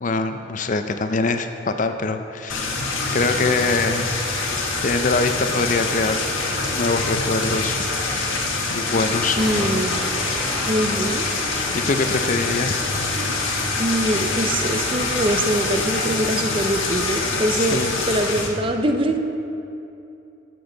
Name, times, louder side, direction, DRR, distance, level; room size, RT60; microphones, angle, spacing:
voice 1, 0.0-2.7 3.1-4.1 4.8-6.2 6.7-7.8 8.7-9.4 11.7-12.8 17.6-17.9, left 3 dB, 40° left, 7 dB, 0.5 m, -23 dB
sound 1, 2.5-18.5, left 3 dB, 85° left, 1.3 m, -25 dB
sound 2, 9.4-12.4, equal, ahead, 1.5 m, -34 dB
voice 2, 9.4-9.9 10.7-11.3 13.8-17.8 18.1-19.2, right 1 dB, 25° right, 5 dB, 0.5 m, -23 dB
13.0 x 7.8 x 3.9 m, 2.8 s
head